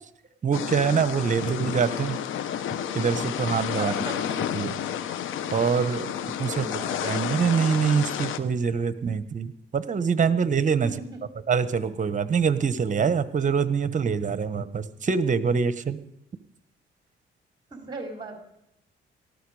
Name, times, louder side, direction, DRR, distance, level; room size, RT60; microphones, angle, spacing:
voice 1, 0.4-2.2 2.9-3.9 4.5-4.7 5.5-6.1 6.4-11.0 11.5-16.0, right 6 dB, 40° right, 13 dB, 1.3 m, -24 dB
sound 1, 0.5-8.4, left 9 dB, 85° left, 1.1 m, -31 dB
voice 2, 3.8-4.4 6.1-6.9 10.8-11.2 17.7-18.4, right 3 dB, 20° right, 2 dB, 3.7 m, -38 dB
18.5 x 14.0 x 5.0 m, 0.82 s
cardioid pair, 90°, 20 cm